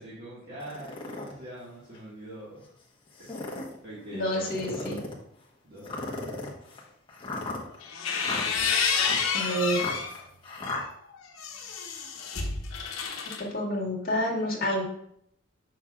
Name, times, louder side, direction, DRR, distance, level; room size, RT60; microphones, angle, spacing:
voice 1, 0.0-2.7 3.2-3.5 3.8-5.0 5.6-6.1, right 1 dB, 45° right, -8 dB, 1.7 m, -43 dB
sound 1, 0.6-1.3 1.9-2.0 3.1-3.8 4.4-5.2 5.8-10.8, left 2 dB, 25° left, 1.1 m, -37 dB
voice 2, 4.1-5.0 9.3-9.8 13.4-14.8, equal, 45° left, -3 dB, 1.9 m, -28 dB
sound 2, 7.8-10.1 10.6-13.4, left 5 dB, 85° left, 0.9 m, -29 dB
7.1 x 6.3 x 2.4 m, 0.70 s
head